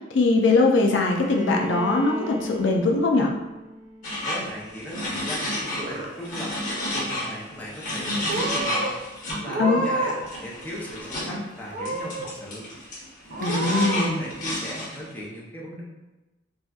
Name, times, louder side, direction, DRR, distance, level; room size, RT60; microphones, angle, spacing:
voice 1, 0.1-3.3 9.6-9.8 13.4-14.2, left 3 dB, 70° left, 1 dB, 0.4 m, -21 dB
Bowed string instrument, 1.1-5.0, equal, 25° right, 0.8 m, -37 dB
sound 1, 4.0-5.9 6.2-9.4 10.2-11.4 11.9-15.1, left 1 dB, 45° left, 1.1 m, -31 dB
voice 2, 4.2-6.6 6.9-8.9 9.3-12.7 13.5-15.8, equal, 10° left, -5 dB, 0.6 m, -37 dB
Purr / Meow, 5.5-6.3 6.6-7.2 7.9-8.0 8.3-8.9 9.4-10.3 10.6-11.3 11.7-12.3 12.7-12.8 13.3-14.0, right 2 dB, 45° right, 0.4 m, -30 dB
4.1 x 2.3 x 2.3 m, 1.1 s
head